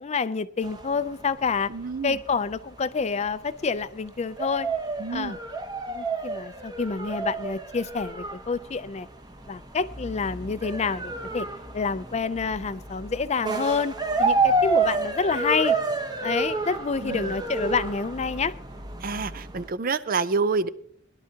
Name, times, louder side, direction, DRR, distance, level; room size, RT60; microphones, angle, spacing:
voice 1, 0.0-1.7 2.0-4.7 5.1-5.4 5.9-9.1 9.5-11.5 11.7-15.8 16.2-18.5, left 5 dB, 35° left, 14 dB, 0.5 m, -28 dB
sound 1, 0.6-19.7, right 3 dB, 20° right, 1.1 m, -30 dB
voice 2, 1.7-2.2 5.0-5.4 17.0-17.3 19.0-20.7, right 4 dB, 45° right, 14 dB, 0.6 m, -28 dB
21.5 x 11.5 x 2.8 m, 0.63 s
head